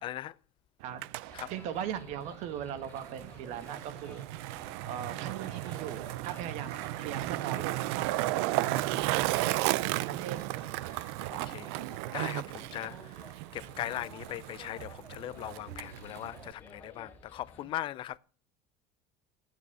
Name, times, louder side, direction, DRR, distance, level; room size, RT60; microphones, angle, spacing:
voice 1, 0.0-0.4 1.3-1.5 9.8-10.1 10.8-11.8 12.1-18.2, left 13 dB, 40° left, 0.4 m, -40 dB
Skateboard, 0.8-16.5, right 18 dB, 80° right, 0.5 m, -35 dB
sound 1, 1.2-17.7, left 3 dB, 15° left, 2.8 m, -54 dB
voice 2, 1.5-4.2 4.9-9.4 10.0-10.4, right 9 dB, 55° right, 1.6 m, -39 dB
9.5 x 8.3 x 7.5 m
cardioid pair, 150°, 14 cm